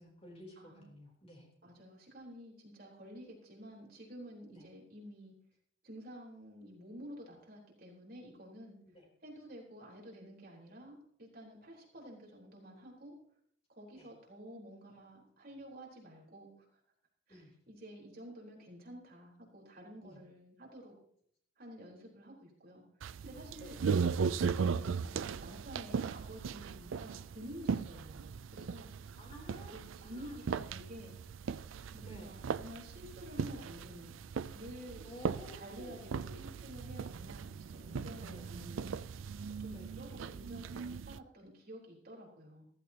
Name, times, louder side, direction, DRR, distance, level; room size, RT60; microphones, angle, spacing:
voice 1, 0.0-1.5 4.5-4.7 8.9-9.0 13.9-14.1 17.3-17.5 20.0-20.2 23.6-23.8 29.2-30.5 32.0-32.4 35.0-36.2 38.2-38.5 39.7-39.9, left 1 dB, 30° left, -1 dB, 3.4 m, -53 dB
voice 2, 0.6-0.9 1.6-5.3 5.8-8.8 9.2-13.2 13.7-16.5 17.3-21.0 21.6-22.8 23.2-23.8 24.2-28.9 29.7-31.2 31.9-34.2 34.5-35.1 35.5-38.9 39.6-42.6, equal, 50° right, -2 dB, 4.0 m, -51 dB
sound 1, 23.0-41.2, right 6 dB, 85° right, 0.4 m, -38 dB
15.0 x 15.0 x 2.9 m, 0.66 s
head